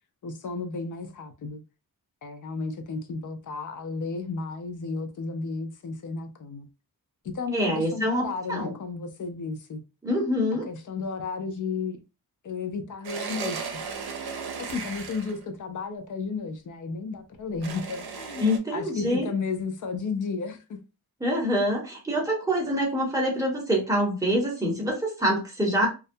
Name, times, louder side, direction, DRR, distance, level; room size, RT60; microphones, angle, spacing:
voice 1, 0.2-1.6 2.2-6.7 7.2-9.8 10.7-12.0 12.4-13.7 14.6-20.8, left 4 dB, 55° left, 0.5 m, -33 dB
voice 2, 7.5-8.2 8.5-8.7 10.0-10.7 18.4-19.3 21.2-25.9, equal, 10° right, 0.9 m, -25 dB
sound 1, 13.0-15.4 17.6-18.6, right 5 dB, 75° right, 0.6 m, -35 dB
2.3 x 2.1 x 2.6 m
wide cardioid pair, 140°, 38 cm